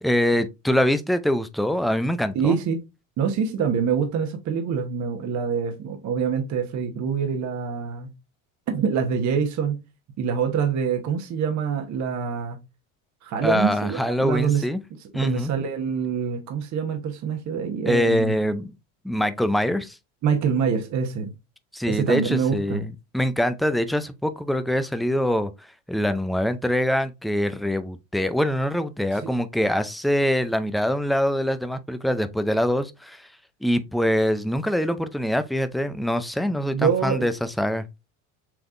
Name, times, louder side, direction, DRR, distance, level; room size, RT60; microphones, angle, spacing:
voice 1, 0.0-2.6 13.4-14.8 15.1-15.5 17.9-18.7 19.0-20.0 21.7-33.3 33.6-37.9, equal, ahead, 0.4 m, -24 dB
voice 2, 2.3-2.8 3.2-8.1 8.7-9.8 10.2-12.6 13.2-14.6 15.1-18.4 20.2-21.3 21.9-22.8 29.2-29.3 36.7-37.3, right 6 dB, 45° right, 1.1 m, -25 dB
5.9 x 3.4 x 2.5 m
supercardioid pair, 100°, 40 cm